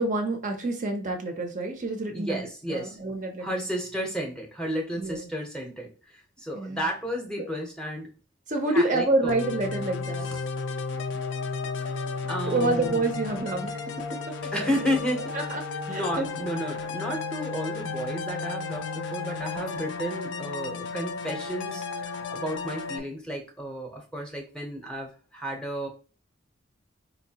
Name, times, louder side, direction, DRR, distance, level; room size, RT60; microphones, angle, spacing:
voice 1, 0.0-3.6 5.0-5.3 6.5-6.9 7.4-7.5 8.5-10.3 12.5-14.7 15.3-15.6 15.9-16.3, right 2 dB, 40° right, 3 dB, 0.5 m, -28 dB
voice 2, 2.1-3.0 3.4-5.9 6.4-8.1 8.7-9.4 10.2-10.4 12.3-13.2 14.4-15.3 15.9-25.9, equal, 5° left, 0 dB, 0.7 m, -32 dB
sound 1, 9.3-23.0, left 4 dB, 60° left, 0.4 m, -33 dB
4.3 x 2.6 x 2.8 m, 0.35 s
head